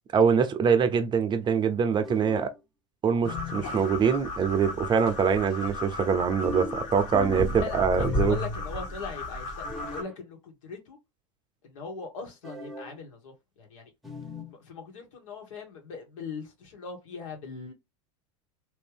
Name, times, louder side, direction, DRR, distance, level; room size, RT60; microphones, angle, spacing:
voice 1, 0.1-2.5 3.0-8.3, right 6 dB, 25° right, 0.6 m, -24 dB
sound 1, 2.0-2.6 3.2-3.8 6.4-7.6 8.0-8.7 9.6-10.1 12.4-13.0 14.0-14.6, left 3 dB, ahead, 0.9 m, -37 dB
sound 2, 3.2-10.0, left 2 dB, 50° left, 1.5 m, -34 dB
voice 2, 7.5-11.0 11.6-13.9 14.5-17.7, left 4 dB, 80° left, 1.8 m, -40 dB
3.3 x 2.6 x 3.3 m
hypercardioid pair, 105°, 17 cm